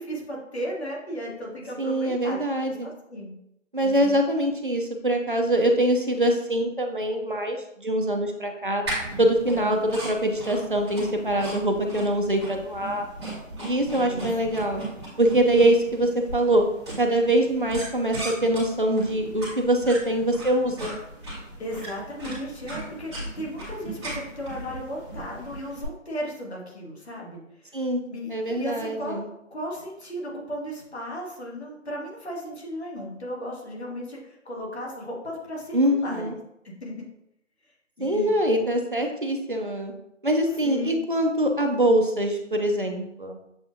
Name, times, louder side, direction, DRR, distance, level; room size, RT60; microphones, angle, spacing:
voice 1, 0.0-2.4 2.7-3.3 3.8-4.2 9.5-9.7 14.0-14.3 21.6-27.8 28.1-29.2 29.5-36.4 36.6-36.9 38.0-38.3 40.6-41.0, equal, 55° left, -3 dB, 1.5 m, -35 dB
voice 2, 1.8-2.9 3.7-8.8 9.2-13.1 13.6-14.8 15.2-16.6 17.0-21.0 27.7-28.0 28.3-29.3 35.7-36.3 38.0-39.9 40.2-43.4, right 1 dB, 45° right, 3 dB, 0.5 m, -23 dB
sound 1, 8.8-25.8, right 2 dB, 20° right, 1.5 m, -37 dB
7.0 x 2.5 x 2.6 m, 0.81 s
hypercardioid pair, 180°, 39 cm